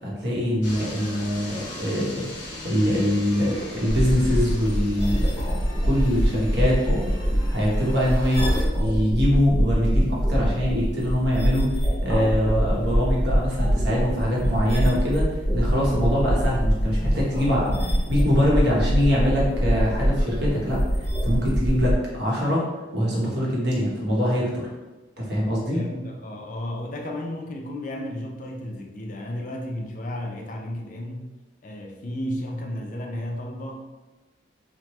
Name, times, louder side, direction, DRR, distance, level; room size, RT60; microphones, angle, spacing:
voice 1, 0.0-7.0 7.5-8.5 8.7-11.7 12.0-15.3 15.5-22.6 22.9-24.7 25.2-25.8, equal, 60° right, -4 dB, 0.9 m, -24 dB
sound 1, 0.6-8.6, left 1 dB, 70° left, 0.9 m, -40 dB
sound 2, 3.9-21.9, equal, 10° left, 1.1 m, -24 dB
voice 2, 25.7-31.2 31.6-33.8, left 1 dB, 40° left, 1 dB, 0.4 m, -33 dB
3.0 x 2.1 x 3.0 m, 1.2 s
head